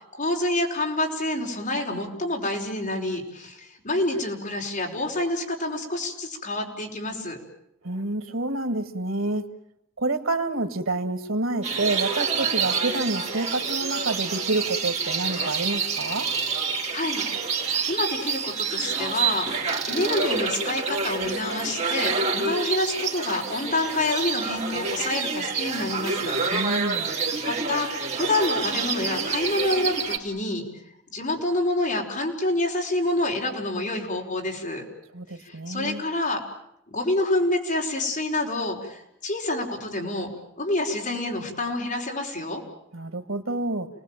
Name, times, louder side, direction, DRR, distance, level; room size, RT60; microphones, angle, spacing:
voice 1, 0.1-7.4 16.9-17.2 17.9-26.4 27.4-27.9 28.2-30.7 31.1-34.8 35.4-36.4 36.9-40.3 40.6-42.6, left 2 dB, 40° left, 1 dB, 5.0 m, -27 dB
voice 2, 7.8-9.5 10.0-16.3 26.5-27.2 35.1-36.0 42.9-43.9, right 2 dB, 90° right, 10 dB, 2.0 m, -28 dB
sound 1, 11.6-30.2, right 5 dB, 35° right, 3.3 m, -28 dB
30.0 x 19.5 x 9.1 m, 0.81 s
head